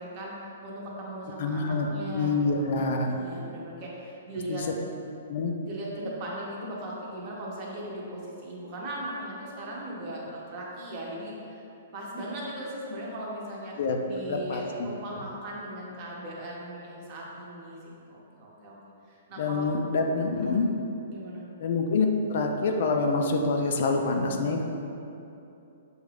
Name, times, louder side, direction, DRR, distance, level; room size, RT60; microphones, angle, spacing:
voice 1, 0.0-4.7 5.6-11.6 11.9-13.8 14.0-18.8 19.0-19.7 20.3-20.5 21.1-21.5, right 1 dB, 30° right, -4 dB, 0.8 m, -38 dB
voice 2, 1.4-3.1 4.5-4.6 5.3-5.5 13.8-14.0 14.3-14.6 19.4-20.7 21.6-24.6, left 3 dB, 55° left, 3 dB, 0.4 m, -26 dB
6.3 x 2.4 x 3.3 m, 2.8 s
hypercardioid pair, 165°, 0 cm